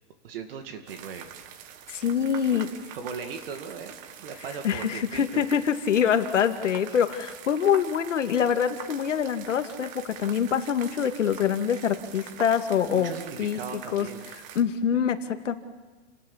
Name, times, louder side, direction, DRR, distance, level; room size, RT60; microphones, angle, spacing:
voice 1, 0.2-1.3 2.5-5.4 12.9-14.3, right 6 dB, 50° right, 6 dB, 2.4 m, -38 dB
sound 1, 0.9-14.6, right 9 dB, 20° right, 1.2 m, -44 dB
voice 2, 1.9-2.7 4.6-13.1 13.4-13.6 13.9-14.1 14.6-15.5, left 8 dB, 90° left, 8 dB, 2.2 m, -25 dB
29.0 x 18.5 x 7.3 m, 1.3 s
hypercardioid pair, 165°, 36 cm